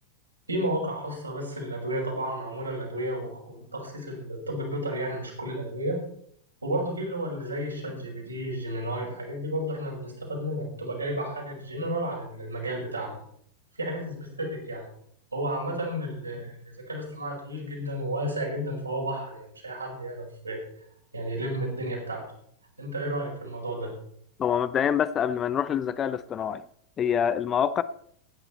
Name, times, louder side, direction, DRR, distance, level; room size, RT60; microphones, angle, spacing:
voice 1, 0.5-6.0 6.6-13.2 13.8-14.8 15.3-20.6 21.1-22.2 22.8-23.9, right 1 dB, 80° right, 4.9 m, -32 dB
voice 2, 24.4-26.6 27.0-27.8, left 8 dB, 25° left, 0.6 m, -26 dB
16.5 x 9.8 x 4.2 m
figure-of-eight pair, 90°, 0 cm